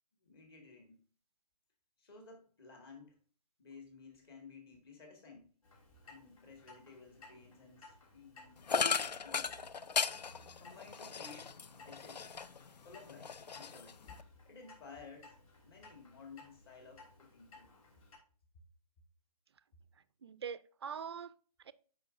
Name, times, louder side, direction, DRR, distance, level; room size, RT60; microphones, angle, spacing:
voice 1, 0.2-1.0 2.0-3.2 3.6-5.5 6.0-9.6 10.6-12.3 12.8-14.0 14.5-15.3 15.6-17.8, left 4 dB, 35° left, 1.8 m, -55 dB
Clock, 5.6-18.2, left 3 dB, 55° left, 3.3 m, -59 dB
sound 1, 8.7-12.7 13.1-14.2, left 6 dB, 80° left, 0.5 m, -36 dB
voice 2, 19.9-21.7, right 7 dB, 40° right, 0.4 m, -45 dB
12.0 x 5.2 x 2.5 m
hypercardioid pair, 155°, 21 cm